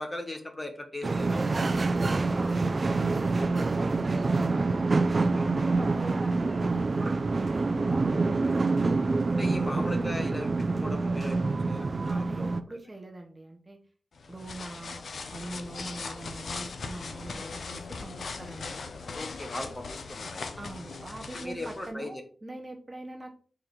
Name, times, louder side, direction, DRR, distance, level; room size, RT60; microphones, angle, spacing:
voice 1, 0.0-1.8 5.3-5.6 9.4-10.5 10.8-12.8 19.1-20.5 21.3-22.2, left 1 dB, 20° left, 4 dB, 1.2 m, -39 dB
sound 1, 1.0-12.6, right 3 dB, 40° right, 0.6 m, -26 dB
voice 2, 1.7-4.7 5.1-9.0 12.1-13.8 14.3-15.0 15.3-18.8 20.6-23.3, right 1 dB, 20° right, 3 dB, 0.9 m, -43 dB
sound 2, 14.1-21.9, left 4 dB, 65° left, 0.9 m, -39 dB
5.1 x 4.7 x 6.0 m, 0.42 s
wide cardioid pair, 170°, 0 cm